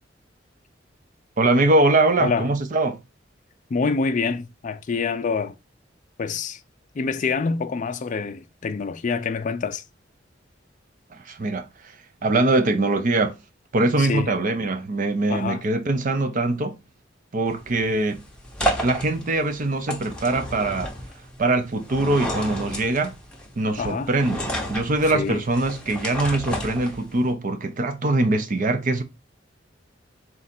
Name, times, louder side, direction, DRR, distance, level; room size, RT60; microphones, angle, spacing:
voice 1, 1.4-3.0 11.1-11.7 12.2-13.3 13.7-16.8 17.3-18.2 18.8-20.9 21.4-23.1 23.6-29.0, right 2 dB, 45° right, 0.6 m, -22 dB
voice 2, 3.7-5.6 6.2-6.6 6.9-9.8 14.0-14.3 15.3-15.6 23.8-24.1 25.1-25.4, left 4 dB, 45° left, 0.4 m, -26 dB
sound 1, 17.5-27.3, equal, 5° left, 0.8 m, -32 dB
4.0 x 2.5 x 4.2 m
head